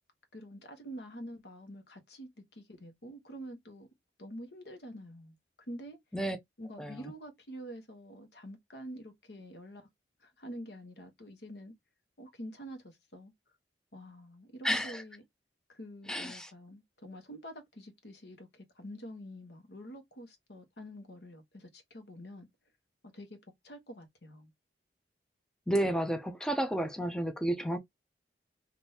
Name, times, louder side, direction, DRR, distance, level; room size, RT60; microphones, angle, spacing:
voice 1, 0.3-3.9 4.2-5.4 5.7-6.0 6.6-9.9 10.2-11.7 12.2-13.3 13.9-15.2 15.7-22.5 23.1-23.4 23.6-24.5, equal, 65° left, 1.1 m, -47 dB
voice 2, 6.8-7.1 14.6-15.0 16.1-16.5 25.7-27.8, right 1 dB, 5° left, 0.4 m, -31 dB
3.5 x 2.6 x 2.7 m
head